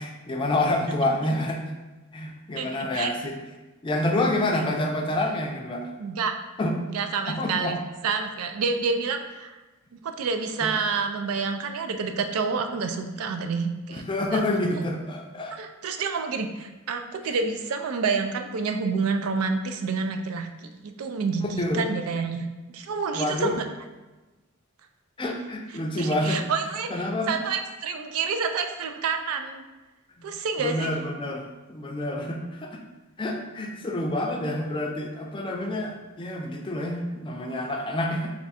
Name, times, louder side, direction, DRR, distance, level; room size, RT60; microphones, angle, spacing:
voice 1, 0.0-1.6 2.1-3.4 3.8-5.9 6.6-6.7 7.3-7.8 10.6-10.7 13.9-15.6 21.6-21.9 23.1-23.5 25.2-26.4 26.9-27.4 30.2-30.3 30.6-32.8 33.2-38.3, left 1 dB, 25° left, 2 dB, 0.4 m, -28 dB
voice 2, 2.5-3.1 6.0-6.3 6.9-9.6 9.9-14.0 14.3-14.4 15.5-20.5 20.8-22.5 22.7-23.6 26.0-29.6 30.2-30.9 37.7-37.8, right 5 dB, 75° right, 6 dB, 0.4 m, -28 dB
3.4 x 2.4 x 4.1 m, 1.1 s
head